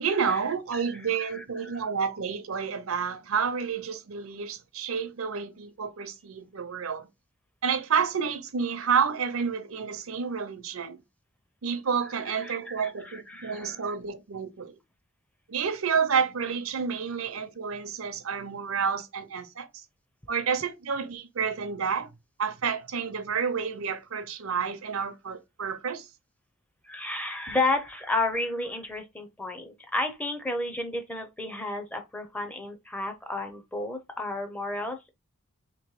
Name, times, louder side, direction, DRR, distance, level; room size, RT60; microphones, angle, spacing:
voice 1, 0.0-7.1 7.6-11.0 11.6-14.8 15.5-19.7 20.3-22.1 22.4-26.0, right 6 dB, 75° right, 0.6 m, -29 dB
voice 2, 0.7-1.9 12.3-13.9 26.8-35.1, left 2 dB, 5° left, 0.6 m, -32 dB
3.1 x 3.0 x 4.6 m
head